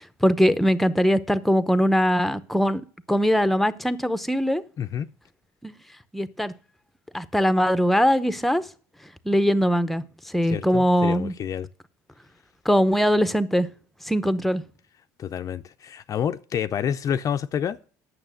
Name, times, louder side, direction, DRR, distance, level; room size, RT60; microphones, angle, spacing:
voice 1, 0.0-2.8 3.1-4.6 5.6-5.7 6.1-6.5 7.1-8.6 9.2-11.3 12.6-13.7 14.0-14.6, equal, ahead, 0.7 m, -21 dB
voice 2, 10.4-11.7 15.2-17.8, left 8 dB, 40° left, 0.5 m, -28 dB
8.8 x 6.5 x 6.4 m
supercardioid pair, 90°, 9 cm